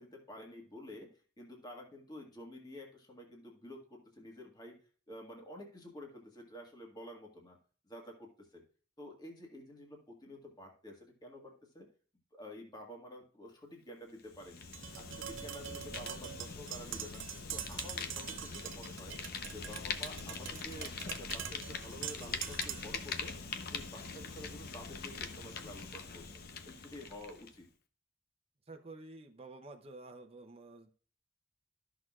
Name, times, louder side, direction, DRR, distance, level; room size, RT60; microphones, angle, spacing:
voice 1, 0.0-4.8 5.1-7.6 7.9-8.6 9.0-11.9 12.3-14.7 14.9-17.2 17.5-19.2 19.5-23.3 23.6-27.7, left 1 dB, 20° left, 1 dB, 1.7 m, -50 dB
Fire, 14.2-27.6, left 5 dB, 55° left, 0.8 m, -43 dB
Tap, 14.7-23.0, right 10 dB, 90° right, 0.6 m, -44 dB
voice 2, 28.7-30.9, right 2 dB, 30° right, 4 dB, 0.7 m, -50 dB
13.5 x 6.1 x 2.4 m, 0.41 s
head